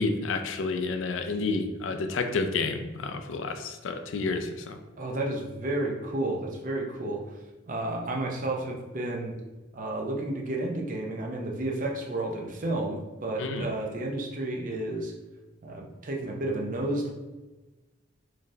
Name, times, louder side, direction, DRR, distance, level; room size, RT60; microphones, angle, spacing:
voice 1, 0.0-4.8 13.4-13.7, left 3 dB, 85° left, 7 dB, 0.4 m, -30 dB
voice 2, 5.0-7.2 7.7-9.3 9.7-15.1 15.6-17.1, right 2 dB, 45° right, 0 dB, 0.6 m, -31 dB
3.8 x 3.2 x 2.7 m, 1.1 s
head